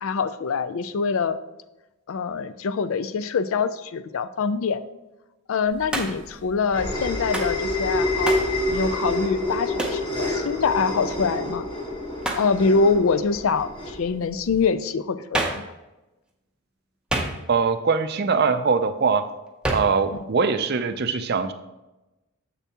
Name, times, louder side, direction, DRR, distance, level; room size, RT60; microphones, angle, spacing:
voice 1, 0.0-1.4 2.1-4.8 5.5-8.3 8.7-11.7 12.3-15.6 20.1-20.2, left 5 dB, 70° left, 12 dB, 0.4 m, -24 dB
sound 1, 5.8-14.6, left 1 dB, 20° left, 1.3 m, -28 dB
Hands, 5.9-6.3 7.3-7.6 8.2-8.5 9.8-10.0 12.2-12.5 15.3-15.7 17.1-17.7 19.6-20.0, right 1 dB, 5° right, 0.6 m, -27 dB
voice 2, 17.5-19.3 19.7-21.5, right 5 dB, 45° right, 10 dB, 0.4 m, -22 dB
7.2 x 6.8 x 2.9 m, 1.0 s
head